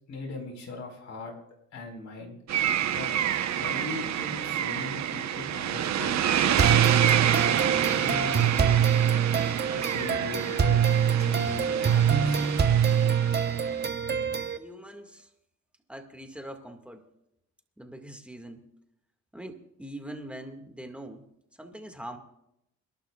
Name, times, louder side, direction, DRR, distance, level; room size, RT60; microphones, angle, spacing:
voice 1, 0.1-1.3 1.7-2.4 2.9-3.1 3.5-6.7 7.4-8.8 9.7-10.8 11.2-12.5, left 3 dB, 65° left, 1 dB, 4.6 m, -39 dB
sound 1, 2.5-13.8, right 10 dB, 65° right, 1.0 m, -28 dB
sound 2, 6.6-14.6, right 8 dB, 35° right, 1.1 m, -24 dB
voice 2, 14.6-15.3 15.9-17.0 17.8-18.6 19.3-21.2 21.6-22.2, right 1 dB, 5° right, 4 dB, 1.9 m, -42 dB
29.0 x 12.0 x 2.4 m, 0.79 s
cardioid pair, 90°, 30 cm